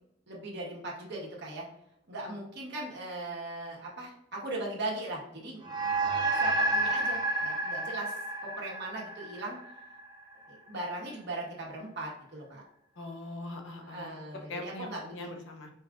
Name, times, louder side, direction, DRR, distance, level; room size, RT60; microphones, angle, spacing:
voice 1, 0.3-1.7 2.1-5.7 6.4-8.1 8.4-9.6 10.5-12.6 13.8-15.3, right 2 dB, 60° right, -3 dB, 1.4 m, -39 dB
sound 1, 5.6-10.3, right 2 dB, 20° right, 0.8 m, -30 dB
voice 2, 13.0-14.2 14.5-15.7, left 2 dB, 70° left, 3 dB, 0.9 m, -41 dB
5.2 x 2.4 x 3.7 m, 0.77 s
head